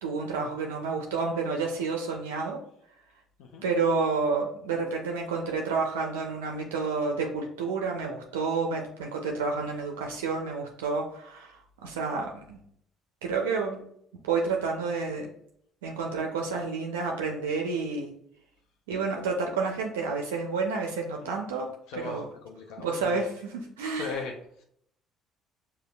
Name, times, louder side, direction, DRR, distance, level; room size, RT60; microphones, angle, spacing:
voice 1, 0.0-2.6 3.6-12.6 13.2-13.8 14.2-15.3 15.8-18.1 18.9-21.7 21.9-22.3 22.8-24.2, right 4 dB, 90° right, 1 dB, 0.4 m, -30 dB
voice 2, 21.9-23.2 23.9-24.3, left 4 dB, 75° left, 1 dB, 0.4 m, -38 dB
5.1 x 2.1 x 2.2 m, 0.68 s
hypercardioid pair, 60°, 0 cm